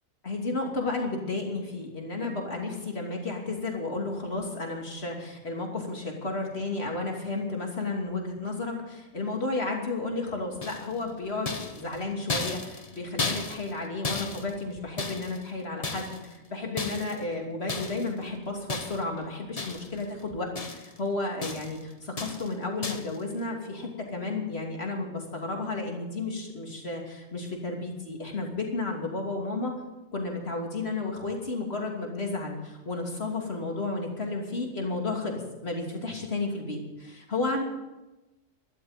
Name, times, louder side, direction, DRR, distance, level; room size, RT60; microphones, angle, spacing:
voice 1, 0.2-29.7 30.1-37.6, left 3 dB, 50° left, 0 dB, 3.1 m, -32 dB
sound 1, 10.6-11.1 11.5-15.5 15.8-16.4 16.8-17.2 17.7-18.1 18.7-19.2 19.6-20.0 20.3-21.0 21.4-21.8 22.2-22.5 22.8-23.2, left 3 dB, 30° left, 1.1 m, -34 dB
13.0 x 11.5 x 7.4 m, 1.0 s
omnidirectional pair, 1.4 m